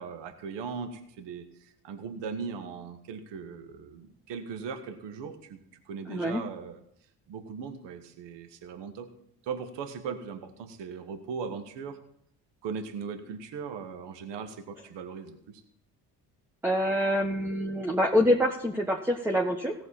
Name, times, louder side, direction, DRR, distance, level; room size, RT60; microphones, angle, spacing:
voice 1, 0.0-6.8 7.3-9.1 9.4-12.0 12.6-15.6, right 6 dB, 60° right, 9 dB, 1.5 m, -39 dB
voice 2, 6.1-6.4 16.6-19.7, equal, 5° right, 2 dB, 1.3 m, -26 dB
17.5 x 6.8 x 4.2 m, 0.71 s
hypercardioid pair, 50°, 48 cm